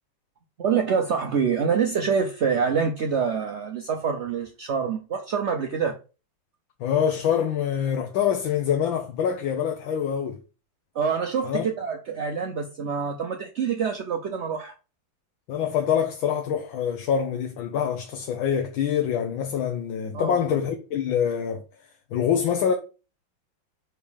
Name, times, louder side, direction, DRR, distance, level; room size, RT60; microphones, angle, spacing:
voice 1, 0.6-6.0 10.9-14.7 20.1-20.4, right 6 dB, 65° right, 0.6 m, -26 dB
voice 2, 6.8-10.4 11.4-11.7 15.5-21.6 22.1-22.8, left 8 dB, 80° left, 1.6 m, -25 dB
5.2 x 4.4 x 5.0 m
omnidirectional pair, 2.1 m